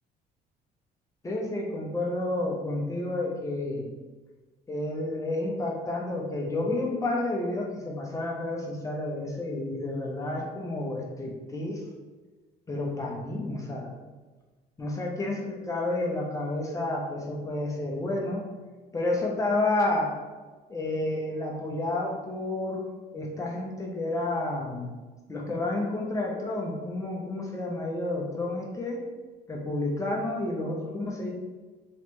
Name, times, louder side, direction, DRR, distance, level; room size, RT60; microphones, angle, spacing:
voice 1, 1.2-3.9 4.7-11.8 12.7-14.0 14.8-18.4 18.9-20.1 20.7-22.9 23.1-24.9 25.3-29.0 29.5-31.3, left 2 dB, 20° left, -1 dB, 0.8 m, -30 dB
3.2 x 3.1 x 3.1 m, 1.3 s
cardioid pair, 110°, 17 cm